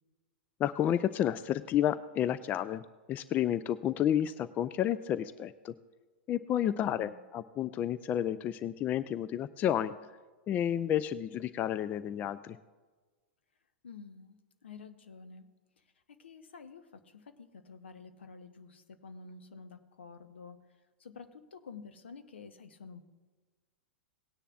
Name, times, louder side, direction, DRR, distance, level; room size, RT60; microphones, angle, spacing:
voice 1, 0.6-2.8 3.1-5.7 6.3-9.9 10.5-12.6, left 10 dB, 25° left, 15 dB, 0.3 m, -31 dB
voice 2, 6.6-7.1 13.8-15.5 15.8-23.0, left 5 dB, 70° left, 9 dB, 0.9 m, -50 dB
18.5 x 9.9 x 2.4 m, 1.4 s
figure-of-eight pair, 100°, 6 cm